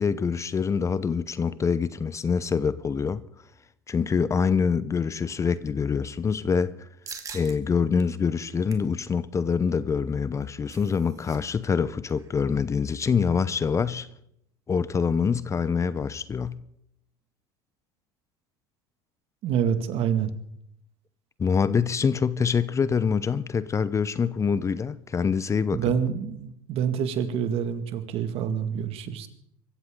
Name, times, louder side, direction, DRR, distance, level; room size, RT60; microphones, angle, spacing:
voice 1, 0.0-3.2 3.9-6.9 7.3-14.1 14.7-16.6 21.4-25.8, left 6 dB, 25° left, 0.8 m, -25 dB
sound 1, 7.1-7.6 8.0-8.1 8.5-8.9 10.2-11.4 11.6-11.8 12.1-12.4, right 6 dB, 30° right, 2.3 m, -43 dB
voice 2, 19.4-20.3 25.7-29.3, right 8 dB, 55° right, 2.1 m, -27 dB
24.0 x 14.0 x 3.8 m
hypercardioid pair, 90°, 12 cm